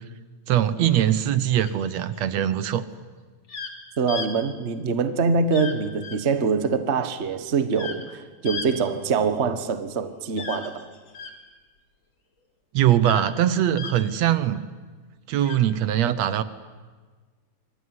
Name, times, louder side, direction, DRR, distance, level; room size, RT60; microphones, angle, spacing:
voice 1, 0.5-2.8 12.7-14.6 15.3-16.4, right 11 dB, 70° right, 2.0 m, -22 dB
sound 1, 1.7-2.2 3.5-3.7 4.1-4.3 5.5-5.8 6.0-6.2 7.7-8.1 8.5-8.7 10.4-11.3 13.0-13.3 13.8-13.9 15.4-15.6, left 5 dB, 45° left, 3.0 m, -35 dB
voice 2, 4.0-10.8, right 5 dB, 40° right, 1.0 m, -24 dB
26.5 x 23.0 x 9.7 m
omnidirectional pair, 3.4 m